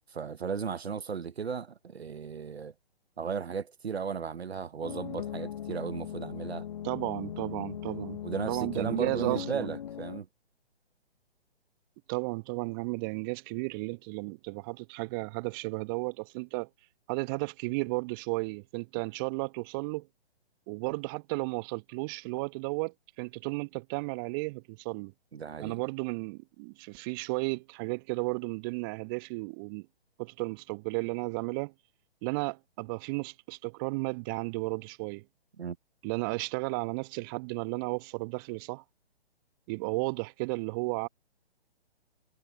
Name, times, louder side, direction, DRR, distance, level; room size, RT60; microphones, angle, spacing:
voice 1, 0.1-2.7 3.2-6.7 7.8-10.3 25.3-25.8 35.6-35.8, right 6 dB, 75° right, 0.8 m, -35 dB
sound 1, 4.8-10.2, left 10 dB, 40° left, 0.7 m, -39 dB
voice 2, 6.8-8.2 8.5-9.7 12.1-16.7 17.1-20.1 20.7-25.1 25.6-29.9 30.2-31.7 32.2-35.2 36.0-38.8 39.7-41.1, right 28 dB, 20° right, 0.9 m, -34 dB
figure-of-eight pair, 130°, 32 cm